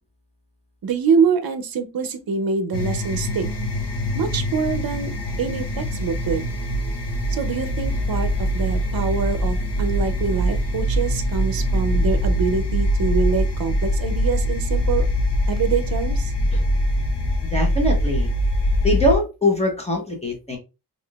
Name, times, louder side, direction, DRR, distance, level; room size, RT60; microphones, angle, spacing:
voice 1, 0.8-3.5 4.1-5.1 5.4-6.5 7.3-15.0 15.5-16.3, right 5 dB, 60° right, 0.6 m, -25 dB
sound 1, 2.7-19.2, equal, 80° left, 0.7 m, -23 dB
voice 2, 17.5-18.3 18.8-20.6, left 1 dB, 15° left, 0.9 m, -22 dB
3.6 x 2.5 x 2.3 m
wide cardioid pair, 110°, 41 cm